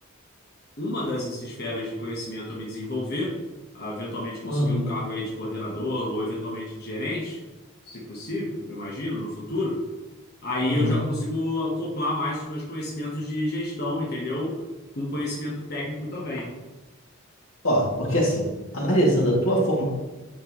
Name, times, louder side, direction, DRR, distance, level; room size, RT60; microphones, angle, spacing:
voice 1, 0.8-3.4 3.7-7.4 7.8-9.8 10.4-14.5 14.9-16.5 18.1-18.3, left 1 dB, 50° left, -4 dB, 1.1 m, -30 dB
voice 2, 4.4-4.8 10.6-11.0 17.6-18.5 18.7-19.8, equal, 85° left, -4 dB, 2.3 m, -22 dB
9.2 x 4.4 x 3.1 m, 1.1 s
head